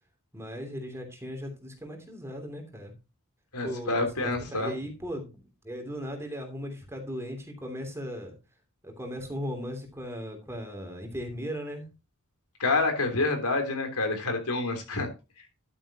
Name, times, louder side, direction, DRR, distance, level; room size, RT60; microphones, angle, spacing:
voice 1, 0.3-2.9 3.6-8.3 8.8-11.9, equal, 10° right, 4 dB, 3.0 m, -37 dB
voice 2, 3.5-4.7 12.6-15.1, left 3 dB, 85° left, 5 dB, 3.4 m, -28 dB
12.0 x 9.1 x 2.9 m, 0.28 s
head